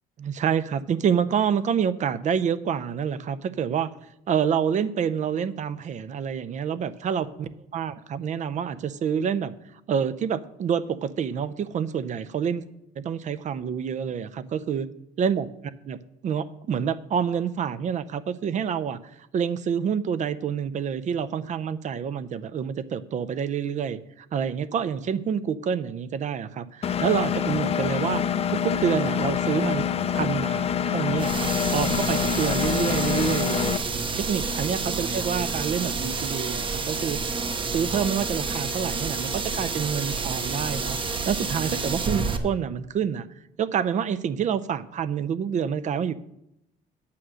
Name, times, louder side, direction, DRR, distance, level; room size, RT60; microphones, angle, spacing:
voice 1, 0.2-3.9 4.3-9.5 9.9-12.6 13.0-14.9 15.2-15.5 15.8-28.2 28.5-29.9 30.1-33.8 34.2-37.2 37.7-43.3 43.6-46.1, right 7 dB, 45° right, 14 dB, 0.5 m, -27 dB
Engine, 26.8-33.8, left 8 dB, 35° left, 0.5 m, -26 dB
sound 1, 31.2-42.4, right 4 dB, 30° right, 0.9 m, -29 dB
8.6 x 6.4 x 6.2 m, 0.81 s
cardioid pair, 110°, 17 cm